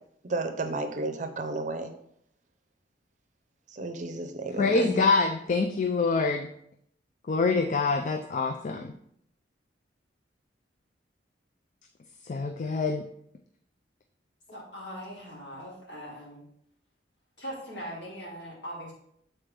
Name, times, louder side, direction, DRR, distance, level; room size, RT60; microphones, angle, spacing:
voice 1, 0.2-1.9 3.7-5.0, right 2 dB, 40° right, 7 dB, 0.6 m, -32 dB
voice 2, 4.6-6.5 7.3-8.9 12.3-13.0, left 4 dB, 45° left, 5 dB, 0.4 m, -25 dB
voice 3, 14.5-16.4 17.4-18.9, equal, 65° left, -5 dB, 2.6 m, -40 dB
7.4 x 4.3 x 3.4 m, 0.71 s
head